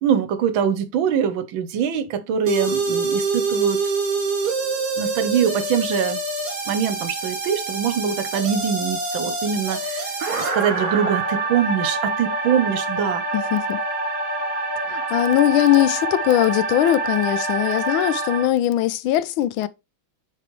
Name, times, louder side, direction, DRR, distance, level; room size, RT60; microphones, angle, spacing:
voice 1, 0.0-3.8 5.0-6.2 6.7-13.2, right 8 dB, 75° right, 1.5 m, -23 dB
sound 1, 2.5-18.5, right 3 dB, 55° right, 2.3 m, -26 dB
voice 2, 13.3-13.8 14.9-19.7, left 13 dB, 80° left, 1.3 m, -20 dB
8.2 x 4.1 x 3.1 m
omnidirectional pair, 2.2 m